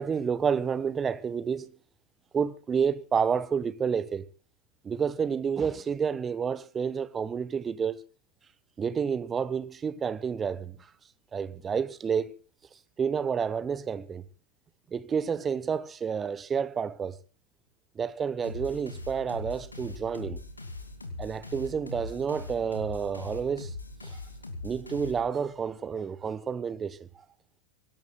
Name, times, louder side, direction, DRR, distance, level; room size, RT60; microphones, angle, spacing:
voice 1, 0.0-1.7 2.3-4.3 4.8-8.0 8.8-10.9 11.3-12.3 13.0-14.2 14.9-17.2 18.0-20.4 21.2-23.7 24.1-24.2 24.6-27.1, right 6 dB, 20° right, 1.0 m, -29 dB
sound 1, 18.4-25.6, left 2 dB, 80° left, 2.4 m, -41 dB
26.0 x 17.5 x 2.3 m
figure-of-eight pair, 90°, 0 cm